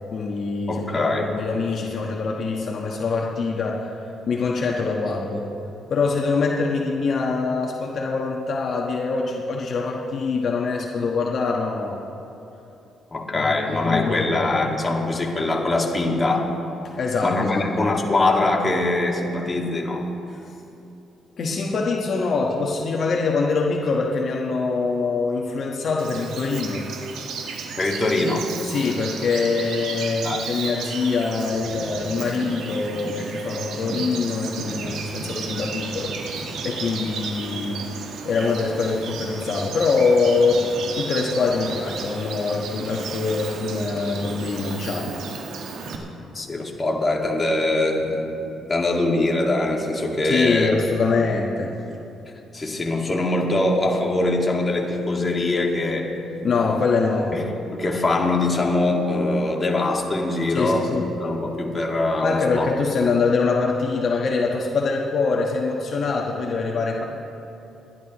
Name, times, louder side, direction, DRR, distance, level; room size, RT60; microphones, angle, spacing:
voice 1, 0.1-3.9 4.3-5.5 5.9-12.0 13.3-14.5 17.0-17.6 21.4-26.8 28.7-37.8 38.2-40.6 40.9-45.1 50.2-51.7 56.4-57.3 60.5-61.1 62.2-67.0, left 4 dB, 55° left, -1 dB, 1.3 m, -24 dB
voice 2, 0.7-1.4 13.1-16.6 17.2-20.1 27.8-28.5 30.2-30.5 46.3-48.4 48.7-50.8 52.5-56.2 57.3-62.7, left 2 dB, 25° left, 0 dB, 2.0 m, -23 dB
Bird vocalization bird call bird song, 26.0-46.0, right 5 dB, 80° right, 1.5 m, -33 dB
30.0 x 11.5 x 3.1 m, 2.9 s
cardioid pair, 90°, 0 cm